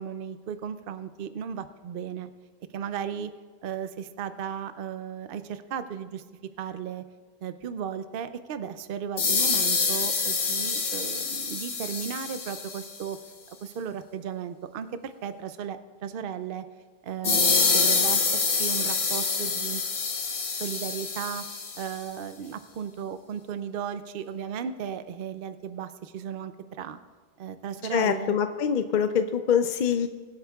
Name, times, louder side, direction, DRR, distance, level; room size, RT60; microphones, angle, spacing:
voice 1, 0.0-2.3 2.7-3.3 3.6-6.2 6.6-7.0 7.4-13.2 13.5-16.6 17.0-19.8 20.5-21.5 21.8-26.5 26.8-27.0 27.4-28.3, right 8 dB, 65° right, 10 dB, 0.7 m, -35 dB
sound 1, 9.2-13.0 17.2-22.0, left 4 dB, 85° left, 1.3 m, -26 dB
voice 2, 27.9-30.1, left 7 dB, 55° left, 8 dB, 0.6 m, -24 dB
24.0 x 8.1 x 2.3 m, 1.5 s
omnidirectional pair, 1.0 m